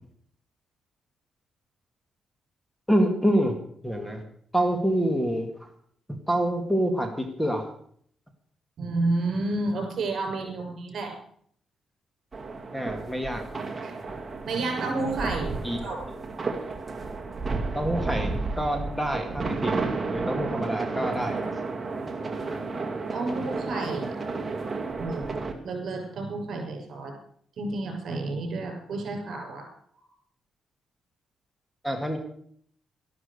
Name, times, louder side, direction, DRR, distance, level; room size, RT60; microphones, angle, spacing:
voice 1, 2.9-3.6 3.8-4.2 4.5-5.7 6.1-7.7 12.7-13.5 15.6-15.8 17.8-19.7 20.1-21.4 31.8-32.2, equal, 5° left, 5 dB, 2.1 m, -26 dB
voice 2, 8.8-11.1 13.8-13.9 14.5-16.0 23.1-24.1 25.0-25.4 25.6-27.1 27.6-29.6, right 2 dB, 60° right, 3 dB, 6.4 m, -30 dB
sound 1, 12.3-25.5, right 3 dB, 25° right, 2.2 m, -32 dB
13.0 x 12.5 x 6.6 m, 0.62 s
cardioid pair, 110°, 0 cm